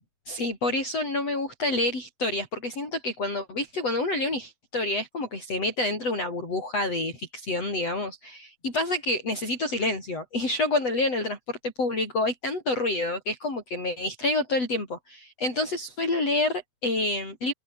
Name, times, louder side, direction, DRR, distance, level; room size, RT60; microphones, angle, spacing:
voice 1, 0.3-17.5, left 2 dB, 30° left, 8.6 m, -28 dB
omnidirectional pair, 5.8 m